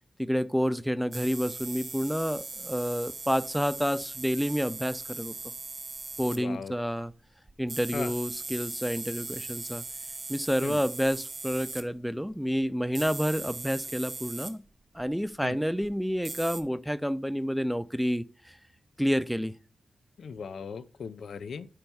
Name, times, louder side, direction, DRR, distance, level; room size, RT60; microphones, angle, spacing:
voice 1, 0.2-5.3 6.2-7.1 7.6-9.8 10.3-14.6 14.9-18.6 19.0-19.5, equal, ahead, 0.3 m, -29 dB
sound 1, 1.1-6.4 7.5-11.8 12.9-14.5 15.0-15.1 15.8-15.9 16.2-16.6, right 3 dB, 35° right, 0.7 m, -39 dB
voice 2, 6.3-6.7 7.9-8.1 10.6-10.8 15.4-15.6 20.2-21.7, left 6 dB, 80° left, 0.3 m, -38 dB
4.6 x 4.3 x 5.4 m
wide cardioid pair, 100°, 0 cm